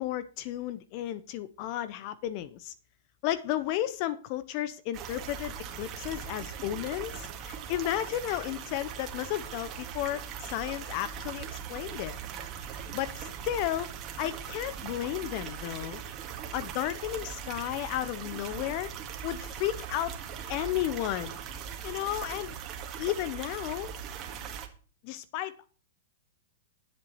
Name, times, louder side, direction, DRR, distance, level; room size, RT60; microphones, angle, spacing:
voice 1, 0.0-2.7 3.2-12.1 12.7-13.9 14.2-16.0 16.5-18.9 19.2-20.2 20.5-21.4 21.8-22.5 23.0-23.9 25.0-25.7, left 13 dB, 45° left, 0.7 m, -33 dB
sound 1, 4.9-24.7, right 7 dB, 30° right, 1.9 m, -40 dB
11.0 x 7.8 x 4.1 m
hypercardioid pair, 125°, 0 cm